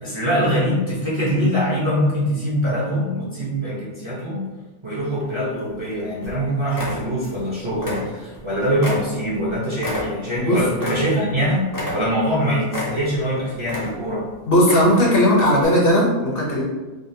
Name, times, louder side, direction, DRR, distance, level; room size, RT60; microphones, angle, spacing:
voice 1, 0.0-4.5 4.8-14.3, equal, 30° right, -7 dB, 0.6 m, -23 dB
sound 1, 5.2-5.8 6.2-6.4 6.7-7.4 7.7-8.5 8.8-11.4 11.7-12.3 12.7-13.3 13.6-14.2 14.6-15.2 15.6-15.7, left 1 dB, 20° left, 0.6 m, -30 dB
voice 2, 14.5-16.6, equal, 55° left, -3 dB, 0.9 m, -17 dB
3.8 x 2.4 x 2.6 m, 1.2 s
omnidirectional pair, 1.2 m